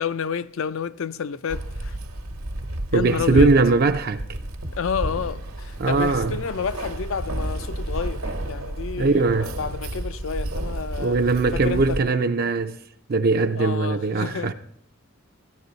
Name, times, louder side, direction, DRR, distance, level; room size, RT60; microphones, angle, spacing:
voice 1, 0.0-2.0 2.9-3.5 4.8-11.2 11.5-12.1 13.6-14.5, left 6 dB, 65° left, 0.4 m, -30 dB
Keys jangling, 1.5-12.0, right 1 dB, 80° right, 1.1 m, -31 dB
voice 2, 2.9-4.2 5.8-6.3 9.0-9.5 11.0-12.8 13.1-14.5, right 3 dB, 45° right, 0.4 m, -20 dB
14.0 x 10.5 x 4.0 m
head